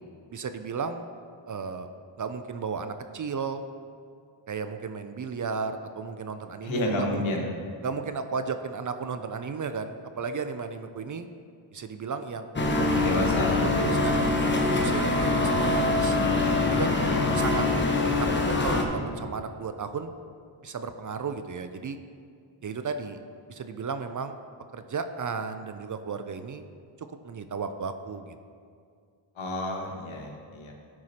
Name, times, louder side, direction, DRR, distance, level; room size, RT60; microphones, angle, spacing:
voice 1, 0.3-1.1 1.5-1.9 2.2-3.6 4.5-7.4 7.8-11.3 11.7-12.7 13.8-16.2 16.6-17.0 17.3-17.6 18.1-20.1 20.6-22.0 22.6-23.2 23.5-24.4 24.7-26.6 27.0-28.3, right 5 dB, 40° right, 9 dB, 0.5 m, -34 dB
voice 2, 6.6-7.6 12.9-13.5 17.0-17.3 29.3-30.7, left 1 dB, 70° left, -1 dB, 1.6 m, -30 dB
sound 1, 12.6-18.9, left 2 dB, 25° left, 1.0 m, -24 dB
11.5 x 4.8 x 4.2 m, 2.3 s
cardioid pair, 90°, 48 cm